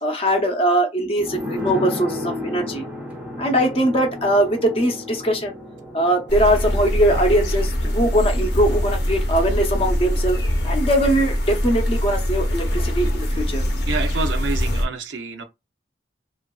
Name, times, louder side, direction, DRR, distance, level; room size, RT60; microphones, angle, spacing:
voice 1, 0.0-2.9 3.4-5.6 5.9-10.4 10.6-13.6, right 1 dB, 30° left, 0.6 m, -21 dB
sound 1, 1.2-10.5 10.7-10.8, left 1 dB, 10° right, 0.5 m, -34 dB
sound 2, 6.3-14.9, equal, 65° left, 0.7 m, -23 dB
voice 2, 13.9-15.4, right 4 dB, 80° right, 0.5 m, -28 dB
2.8 x 2.4 x 2.3 m
head